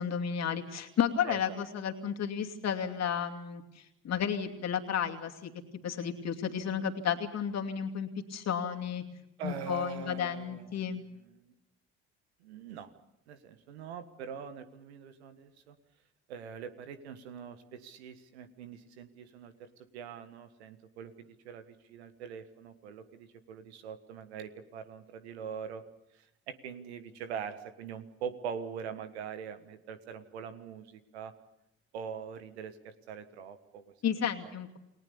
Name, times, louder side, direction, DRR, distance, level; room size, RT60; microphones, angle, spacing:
voice 1, 0.0-5.5 5.8-9.0 9.4-11.0 34.0-34.8, left 8 dB, 55° left, 4 dB, 2.6 m, -32 dB
voice 2, 1.2-1.6 9.4-11.5 12.4-12.9 13.3-15.7 16.3-19.7 19.9-25.8 26.1-31.3 31.9-33.9 34.4-34.5, right 7 dB, 85° right, 10 dB, 1.5 m, -43 dB
29.0 x 19.0 x 7.0 m, 0.89 s
hypercardioid pair, 50°, 32 cm